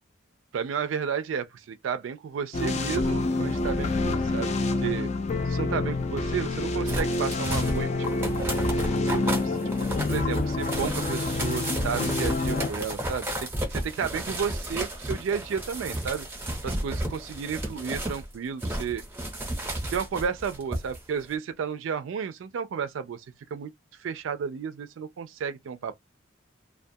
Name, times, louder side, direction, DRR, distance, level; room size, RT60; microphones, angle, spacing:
voice 1, 0.5-4.5 4.8-5.1 5.5-8.4 9.0-9.6 10.1-16.3 16.6-19.0 19.9-23.2 23.5-23.7 24.0-26.0, right 6 dB, 85° right, 0.3 m, -32 dB
sound 1, 2.5-12.7, left 2 dB, 35° left, 0.3 m, -27 dB
sound 2, 6.9-18.3 18.6-21.0 21.3-21.4, right 1 dB, 10° right, 0.7 m, -33 dB
2.2 x 2.2 x 2.7 m
head